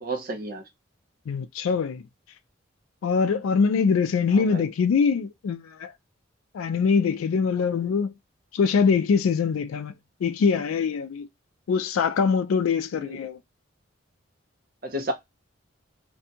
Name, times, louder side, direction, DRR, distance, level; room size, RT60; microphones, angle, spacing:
voice 1, 0.0-0.6 4.3-4.7 12.9-13.2 14.8-15.1, right 1 dB, 45° right, 0.7 m, -32 dB
voice 2, 1.3-2.0 3.0-5.9 6.5-8.1 8.5-9.9 10.2-11.3 11.7-13.4, left 5 dB, 85° left, 0.3 m, -23 dB
2.6 x 2.2 x 2.7 m
head